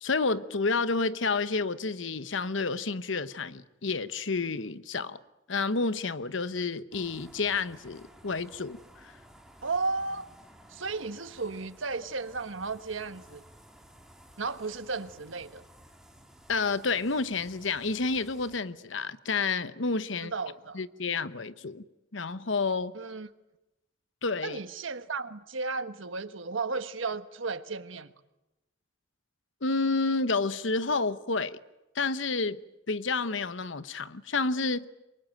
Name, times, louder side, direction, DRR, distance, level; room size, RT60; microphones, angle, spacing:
voice 1, 0.0-5.2 5.5-8.8 9.0-9.1 16.5-20.3 20.7-21.8 22.1-22.9 24.2-24.6 29.6-31.6 31.9-32.6 32.9-34.9, left 4 dB, 75° left, 1.1 m, -30 dB
sound 1, 6.9-18.6, equal, 5° right, 2.9 m, -55 dB
voice 2, 9.6-10.3 10.7-13.4 14.4-15.6 20.2-20.8 22.9-23.3 24.4-28.1, right 4 dB, 90° right, 1.4 m, -34 dB
27.5 x 23.0 x 9.1 m
head